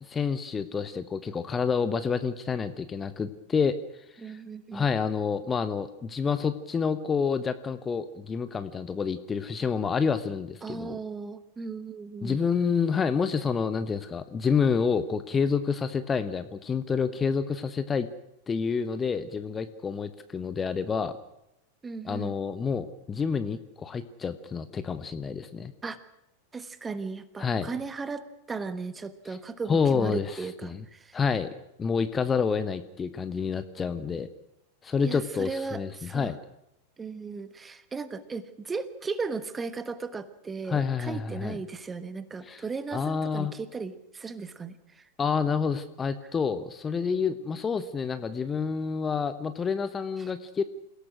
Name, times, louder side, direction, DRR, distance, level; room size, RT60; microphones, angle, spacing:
voice 1, 0.1-3.7 4.2-4.4 4.7-11.0 12.2-18.1 18.5-21.1 22.0-25.7 27.4-27.7 29.3-29.4 29.7-30.4 30.7-30.8 31.1-31.5 31.8-34.3 34.8-36.4 40.7-41.6 42.5-42.6 42.9-43.5 45.2-50.6, left 6 dB, 20° left, 11 dB, 1.1 m, -28 dB
voice 2, 4.2-4.9 10.6-12.4 21.8-22.3 25.8-26.0 26.5-31.2 35.0-36.3 37.0-45.0 50.2-50.3, right 4 dB, 15° right, 13 dB, 1.4 m, -36 dB
27.5 x 17.0 x 6.3 m, 0.84 s
figure-of-eight pair, 90°, 0 cm